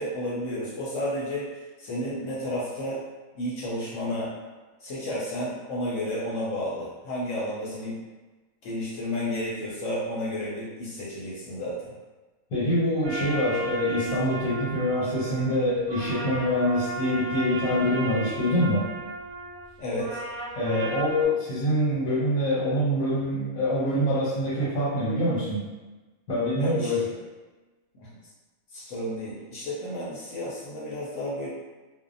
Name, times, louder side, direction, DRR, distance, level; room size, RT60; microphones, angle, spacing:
voice 1, 0.0-3.0 3.3-4.3 4.8-8.0 8.6-11.9 19.8-20.2 26.6-27.0 27.9-28.1 28.7-31.5, left 1 dB, 70° left, -6 dB, 0.9 m, -32 dB
voice 2, 12.5-18.8 20.5-25.6 26.3-27.0, equal, 90° left, -10 dB, 1.3 m, -25 dB
sound 1, 13.0-21.2, right 2 dB, 85° right, 1.1 m, -35 dB
2.6 x 2.1 x 2.5 m, 1.2 s
omnidirectional pair, 1.4 m